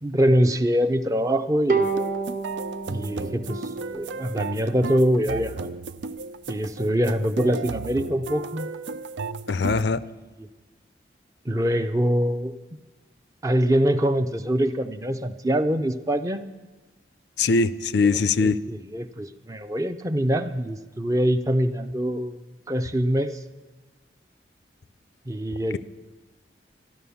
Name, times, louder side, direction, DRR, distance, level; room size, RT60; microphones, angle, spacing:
voice 1, 0.0-1.9 2.9-5.7 6.5-8.7 10.0-10.5 11.5-12.5 13.4-16.5 18.4-22.4 22.7-23.4 25.3-25.8, equal, 20° right, 9 dB, 0.5 m, -24 dB
Bowed string instrument, 1.7-5.0, right 4 dB, 50° right, 1.2 m, -29 dB
sound 1, 1.8-9.8, right 4 dB, 85° right, 0.5 m, -34 dB
voice 2, 9.5-10.0 17.4-18.6, left 4 dB, 70° left, 16 dB, 0.4 m, -21 dB
13.0 x 11.5 x 7.0 m, 1.3 s
head